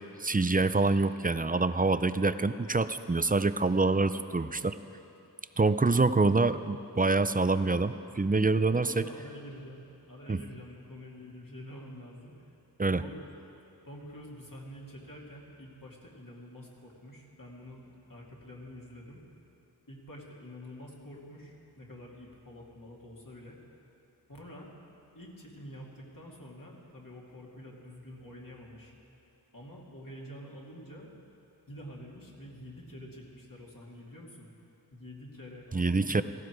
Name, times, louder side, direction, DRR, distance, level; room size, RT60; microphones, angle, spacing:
voice 1, 0.2-4.8 5.6-9.0 10.3-10.4 12.8-13.0 35.7-36.2, right 3 dB, 20° right, 13 dB, 0.4 m, -26 dB
voice 2, 8.7-12.5 12.9-13.2 13.9-19.2 19.9-23.6 24.3-24.7 25.1-28.9 29.5-31.1 31.7-34.5 34.9-36.2, equal, 50° left, -3 dB, 2.6 m, -47 dB
17.0 x 15.0 x 4.7 m, 2.8 s
wide cardioid pair, 50°, 41 cm